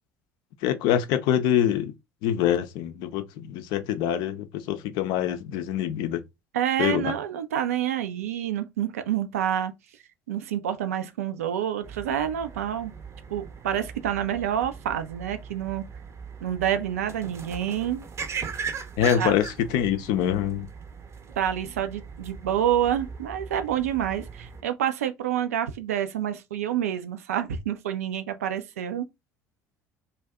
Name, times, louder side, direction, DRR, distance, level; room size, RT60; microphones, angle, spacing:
voice 1, 0.6-1.9 2.2-6.2 6.8-7.1 19.0-20.7, left 10 dB, 65° left, 0.5 m, -25 dB
voice 2, 6.5-9.7 10.3-12.9 13.3-15.8 16.4-18.0 19.2-19.3 21.4-29.1, right 10 dB, 80° right, 0.4 m, -28 dB
sound 1, 11.8-24.6, right 6 dB, 35° right, 0.6 m, -39 dB
2.6 x 2.2 x 3.3 m
hypercardioid pair, 60°, 8 cm